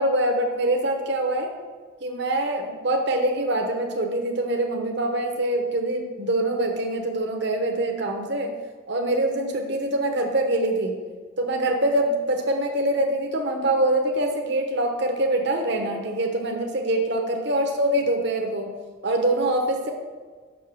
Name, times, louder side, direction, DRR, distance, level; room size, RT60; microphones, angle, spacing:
voice 1, 0.0-1.5 2.0-8.5 8.9-11.0 11.4-18.7 19.0-19.9, right 1 dB, 55° right, 2 dB, 1.1 m, -24 dB
7.3 x 6.5 x 6.4 m, 1.5 s
head